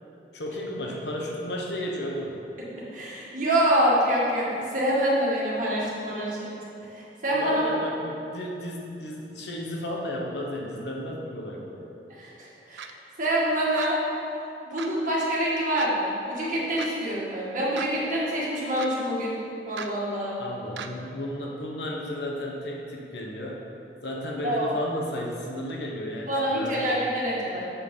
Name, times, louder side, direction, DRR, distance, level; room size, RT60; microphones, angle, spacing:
voice 1, 0.3-2.4 7.4-11.9 20.4-23.6 24.0-26.9, left 1 dB, 70° left, -1 dB, 1.1 m, -33 dB
voice 2, 2.9-6.5 6.8-7.6 12.1-12.9 13.2-14.0 14.6-19.4 19.7-20.4 24.4-24.8 26.3-27.7, equal, 45° right, -6 dB, 1.8 m, -26 dB
sound 1, 12.8-12.9 13.8-13.9 14.8-14.9 15.8-15.9 16.8-16.9 17.8-17.9 18.8-18.9 19.8-19.9 20.8-20.9, right 7 dB, 80° right, 0.4 m, -36 dB
7.4 x 5.2 x 5.4 m, 2.7 s
head